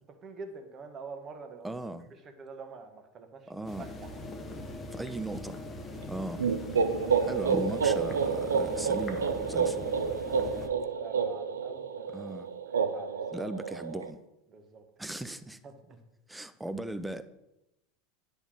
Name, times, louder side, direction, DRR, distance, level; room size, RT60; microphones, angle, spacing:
voice 1, 0.2-1.8 2.2-3.5 3.8-4.5 5.9-6.1 6.9-7.1 10.3-12.4 12.9-13.1 14.5-14.8 15.6-16.0, right 4 dB, 35° right, 1.4 m, -46 dB
voice 2, 1.6-2.1 3.5-3.9 4.9-5.6 6.1-6.4 7.2-9.9 12.1-12.5 13.3-14.2 15.0-15.6 16.3-17.2, right 1 dB, 5° right, 0.6 m, -38 dB
sound 1, 3.6-10.7, left 2 dB, 25° left, 1.2 m, -41 dB
sound 2, 6.4-14.1, right 6 dB, 85° right, 0.5 m, -29 dB
9.9 x 3.5 x 6.2 m
hypercardioid pair, 80°, 0 cm